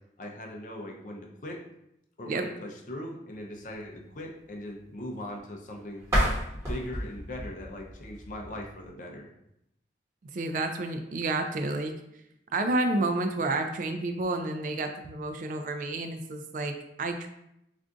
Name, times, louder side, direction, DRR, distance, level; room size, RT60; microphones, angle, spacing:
voice 1, 0.2-1.6 2.2-6.0 6.5-9.3, left 1 dB, 45° left, 0 dB, 0.5 m, -40 dB
sound 1, 6.0-8.9, equal, 15° right, 1.0 m, -31 dB
voice 2, 10.3-11.9 12.5-17.3, right 2 dB, 45° right, 7 dB, 0.3 m, -30 dB
2.5 x 2.3 x 3.7 m, 0.81 s
head